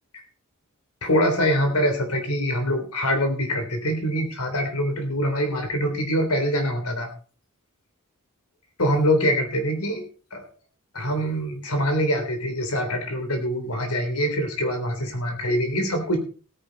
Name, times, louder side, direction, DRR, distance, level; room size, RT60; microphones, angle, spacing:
voice 1, 1.0-7.1 8.8-10.1 10.3-10.5 10.9-16.2, equal, 90° left, 6 dB, 3.5 m, -24 dB
16.5 x 9.7 x 4.1 m, 0.38 s
head